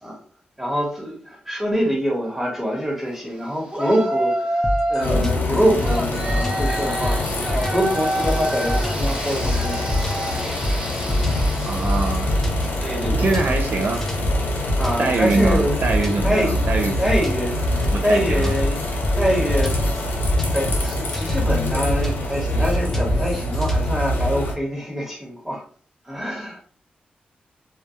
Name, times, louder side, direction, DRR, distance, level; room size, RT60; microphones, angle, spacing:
voice 1, 0.6-7.3 7.5-9.8 11.0-11.3 12.8-13.3 14.8-15.8 16.2-16.7 17.0-18.8 19.1-25.6 26.0-26.6, equal, 10° right, 1.1 m, -25 dB
Yell, 3.7-5.3 5.8-12.5, right 1 dB, 35° right, 0.8 m, -28 dB
sound 1, 4.6-23.8, equal, 10° left, 0.7 m, -26 dB
sound 2, 5.0-24.5, left 1 dB, 80° left, 0.7 m, -25 dB
voice 2, 11.6-12.3 13.1-14.0 15.0-17.0 17.9-18.5, right 3 dB, 65° right, 0.4 m, -23 dB
2.3 x 2.1 x 2.7 m
cardioid pair, 65°, 3 cm